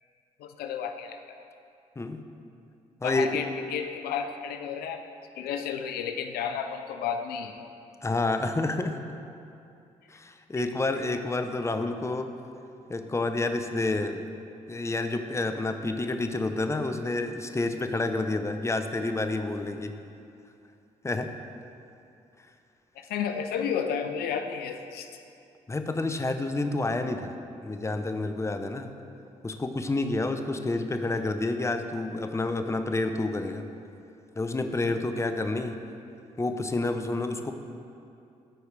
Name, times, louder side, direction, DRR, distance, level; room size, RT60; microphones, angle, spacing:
voice 1, 0.4-1.4 3.0-5.0 5.4-7.6 10.6-10.7 23.0-25.1, left 7 dB, 80° left, 7 dB, 0.5 m, -32 dB
voice 2, 3.0-3.3 8.0-9.0 10.1-12.3 12.9-14.3 14.7-20.0 21.0-21.3 25.7-27.3 27.6-28.9 29.4-33.6 34.4-35.8 36.4-37.5, left 2 dB, 15° left, 7 dB, 0.6 m, -29 dB
13.5 x 4.7 x 3.3 m, 2.6 s
supercardioid pair, 50°, 16 cm